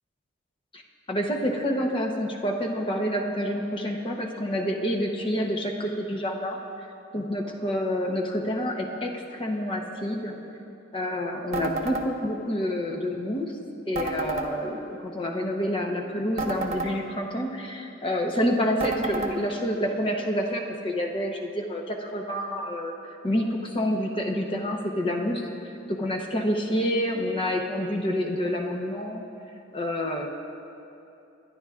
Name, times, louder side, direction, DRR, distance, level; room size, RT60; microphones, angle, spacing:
voice 1, 1.1-6.6 7.1-10.4 10.9-13.6 13.9-29.2 29.7-30.3, equal, 25° left, 1 dB, 0.9 m, -28 dB
sound 1, 11.5-12.1 13.9-14.5 16.4-16.9 18.8-19.3, right 2 dB, 35° right, 0.9 m, -30 dB
23.0 x 10.5 x 2.4 m, 2.7 s
head